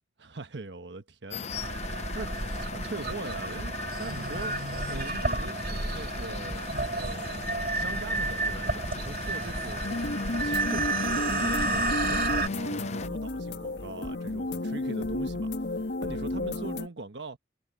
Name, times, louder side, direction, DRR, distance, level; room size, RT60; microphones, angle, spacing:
voice 1, 0.2-4.6 4.9-7.4 7.7-9.9 10.4-17.4, right 3 dB, 85° right, 1.2 m, -42 dB
sound 1, 1.3-13.1, left 4 dB, 40° left, 0.7 m, -39 dB
sound 2, 1.5-12.5, right 2 dB, 55° right, 2.0 m, -31 dB
sound 3, 9.8-16.9, left 2 dB, 85° left, 1.5 m, -32 dB
head